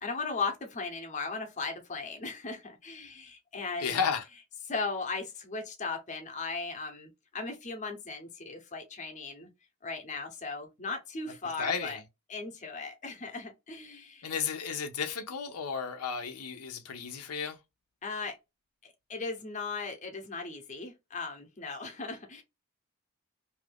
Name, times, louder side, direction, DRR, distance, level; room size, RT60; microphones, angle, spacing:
voice 1, 0.0-4.0 4.7-9.5 9.8-12.0 12.3-14.3 18.0-18.4 18.8-22.4, left 4 dB, 35° left, 0.7 m, -37 dB
voice 2, 3.8-4.2 11.6-12.0 14.2-17.6, left 6 dB, 85° left, 0.6 m, -33 dB
2.7 x 2.4 x 3.4 m
head